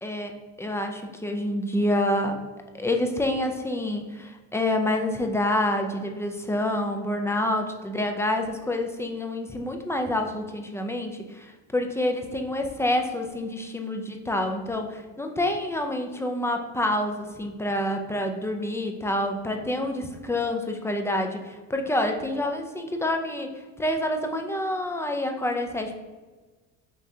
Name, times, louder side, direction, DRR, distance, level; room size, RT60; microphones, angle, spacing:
voice 1, 0.0-2.4 2.7-25.9, left 1 dB, 5° left, 4 dB, 0.3 m, -27 dB
5.5 x 3.6 x 2.7 m, 1.3 s
supercardioid pair, 110°, 41 cm